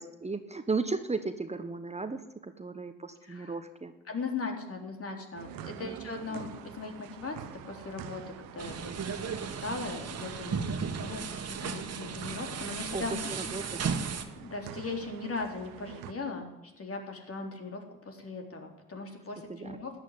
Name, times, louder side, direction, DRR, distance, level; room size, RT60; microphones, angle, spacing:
voice 1, 0.0-3.9 5.7-6.0 12.9-14.1 19.5-19.8, right 3 dB, 20° right, 9 dB, 1.2 m, -35 dB
voice 2, 3.2-3.5 4.1-7.4 7.7-13.5 13.8-14.1 14.4-16.5 16.8-19.9, left 3 dB, 40° left, 3 dB, 3.9 m, -39 dB
sound 1, 5.3-16.1, right 11 dB, 75° right, 1.1 m, -47 dB
sound 2, 8.6-14.2, right 6 dB, 45° right, 1.8 m, -35 dB
13.5 x 9.2 x 9.9 m, 1.0 s
hypercardioid pair, 50°, 34 cm